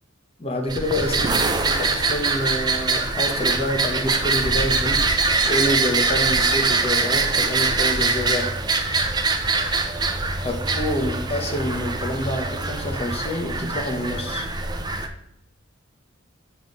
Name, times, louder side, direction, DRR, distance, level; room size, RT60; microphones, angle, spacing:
voice 1, 0.4-5.0 5.4-8.5 10.4-14.5, left 1 dB, 30° left, 2 dB, 1.0 m, -27 dB
sound 1, 0.7-15.1, right 3 dB, 20° right, 0.5 m, -23 dB
7.0 x 3.2 x 5.2 m, 0.80 s
head